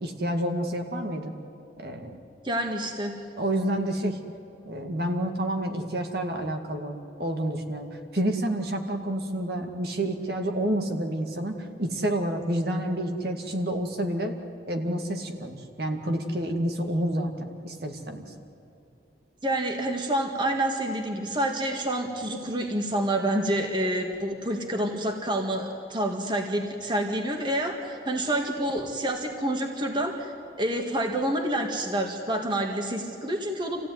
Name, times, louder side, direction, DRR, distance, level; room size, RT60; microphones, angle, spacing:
voice 1, 0.0-1.3 1.8-2.2 3.4-4.2 4.7-14.3 14.7-18.3, right 1 dB, 60° right, 3 dB, 2.2 m, -29 dB
voice 2, 2.4-3.2 19.4-30.3 30.6-33.9, right 1 dB, 25° right, 3 dB, 1.8 m, -28 dB
27.5 x 16.5 x 9.4 m, 2.8 s
head